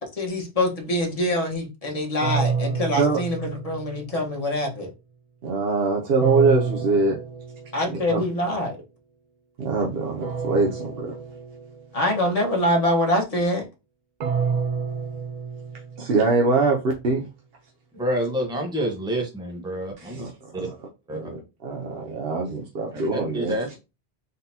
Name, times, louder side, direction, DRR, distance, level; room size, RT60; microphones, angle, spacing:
voice 1, 0.2-4.9 7.7-8.8 11.9-13.6, left 1 dB, 35° left, 1.4 m, -24 dB
sound 1, 2.2-4.3 6.2-8.0 10.2-12.0 14.2-16.4, right 6 dB, 50° right, 0.6 m, -29 dB
voice 2, 5.4-7.2 7.9-8.2 9.6-11.2 16.0-17.3 20.0-20.7 21.1-21.3 21.6-23.5, right 3 dB, 70° right, 1.0 m, -23 dB
voice 3, 18.0-20.2 20.5-20.7 21.1-21.3 23.1-23.8, right 1 dB, 5° right, 1.1 m, -28 dB
4.0 x 3.8 x 2.8 m
omnidirectional pair, 1.0 m